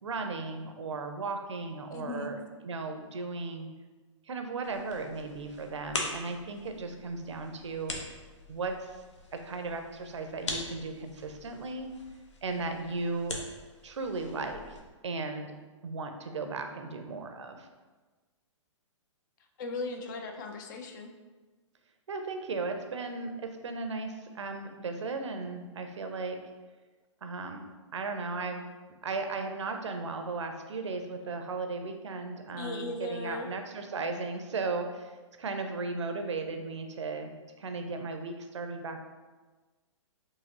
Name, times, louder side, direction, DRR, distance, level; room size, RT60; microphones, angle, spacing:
voice 1, 0.0-2.4 2.6-3.7 4.3-7.9 8.5-9.0 9.3-11.9 12.4-13.4 13.8-14.8 15.0-15.5 15.8-17.7 22.1-26.4 27.2-27.7 27.9-28.8 29.0-39.0, right 3 dB, 65° right, 6 dB, 0.6 m, -36 dB
voice 2, 1.9-2.3 19.6-21.1 32.5-33.5, left 2 dB, 40° left, 5 dB, 0.5 m, -37 dB
sound 1, 4.6-14.8, left 2 dB, 65° left, 0.8 m, -42 dB
4.7 x 2.9 x 2.9 m, 1.3 s
figure-of-eight pair, 120°, 16 cm